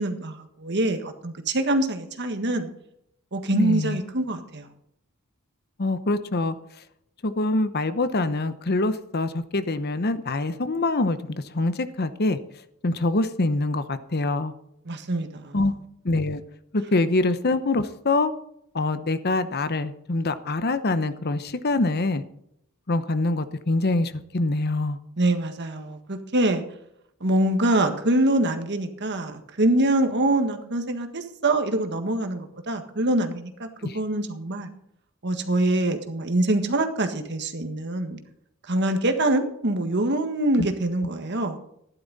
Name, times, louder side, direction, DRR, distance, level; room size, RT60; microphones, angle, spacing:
voice 1, 0.0-2.7 3.3-4.7 14.9-15.6 25.2-26.6 27.2-34.7 35.2-38.2 38.7-41.6, right 1 dB, 55° right, 6 dB, 1.6 m, -24 dB
voice 2, 3.5-4.0 5.8-6.6 7.2-12.4 12.8-14.5 15.5-15.7 16.0-16.4 16.7-18.3 18.7-22.2 22.9-25.0 33.8-34.0 40.6-40.7, left 2 dB, 45° left, 12 dB, 0.9 m, -25 dB
13.5 x 11.0 x 4.1 m, 0.73 s
head